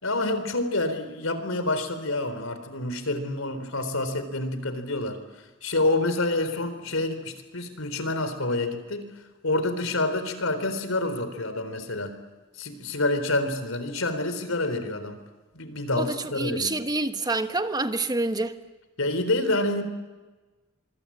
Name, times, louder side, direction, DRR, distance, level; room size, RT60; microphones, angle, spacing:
voice 1, 0.0-5.2 5.6-9.1 9.4-12.2 12.6-15.2 15.5-16.8 19.0-19.8, left 2 dB, 85° left, 4.0 m, -27 dB
voice 2, 16.0-18.6, right 2 dB, 20° right, 1.3 m, -27 dB
26.0 x 24.5 x 8.7 m
head